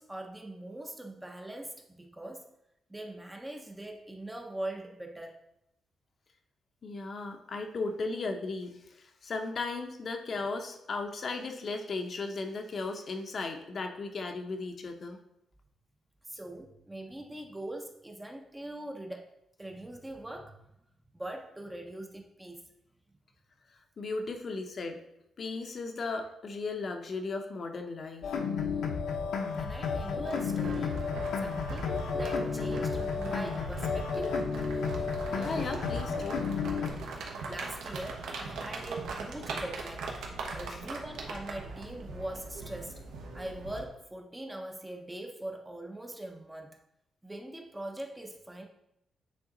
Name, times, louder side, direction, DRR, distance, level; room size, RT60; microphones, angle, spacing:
voice 1, 0.0-2.5 2.9-5.4 16.3-19.3 19.6-20.6 21.1-22.6 29.5-31.0 31.4-34.5 37.5-40.1 40.5-43.0 43.3-46.8 47.2-48.7, right 1 dB, 5° right, 2 dB, 0.5 m, -42 dB
voice 2, 6.8-15.2 24.0-25.0 25.4-28.4 35.3-36.4 40.7-40.8, left 3 dB, 35° left, 5 dB, 0.6 m, -36 dB
sound 1, 28.2-36.9, left 5 dB, 70° left, 0.8 m, -32 dB
sound 2, 30.2-43.9, right 3 dB, 90° right, 1.1 m, -40 dB
8.6 x 3.6 x 3.8 m, 0.82 s
cardioid pair, 165°, 0 cm